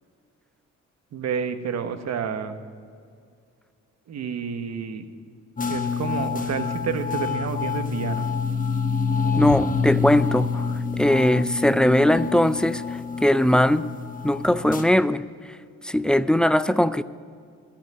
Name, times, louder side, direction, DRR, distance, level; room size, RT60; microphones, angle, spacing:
voice 1, 1.1-2.6 4.1-5.0 5.7-8.3, right 7 dB, 60° right, 1.1 m, -29 dB
sound 1, 5.6-14.8, left 5 dB, 25° left, 1.0 m, -27 dB
voice 2, 9.4-10.7 10.9-13.9 14.2-15.2 15.8-17.0, left 1 dB, 5° left, 0.3 m, -20 dB
13.5 x 5.9 x 8.9 m
cardioid pair, 90°, 30 cm